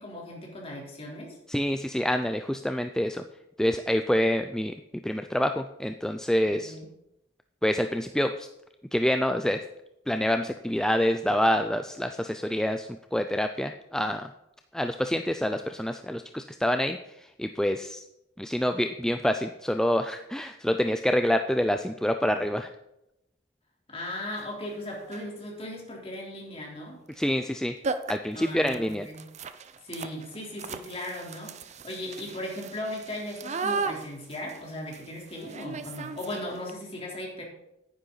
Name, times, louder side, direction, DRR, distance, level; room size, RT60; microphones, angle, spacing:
voice 1, 0.0-1.4 6.6-6.9 23.9-27.0 28.3-29.3 29.8-37.4, left 1 dB, 35° left, -2 dB, 3.5 m, -37 dB
voice 2, 1.5-3.2 3.6-4.8 5.0-6.7 7.6-8.5 8.9-9.6 10.1-14.3 14.7-18.0 18.4-22.7 27.2-27.8 28.1-29.1, equal, 5° left, 7 dB, 0.4 m, -27 dB
sound 1, 24.4-24.5 25.0-25.4 27.1-27.3 27.5-27.6 27.8-36.7, right 4 dB, 40° right, 0.6 m, -36 dB
10.0 x 9.9 x 4.0 m, 0.86 s
head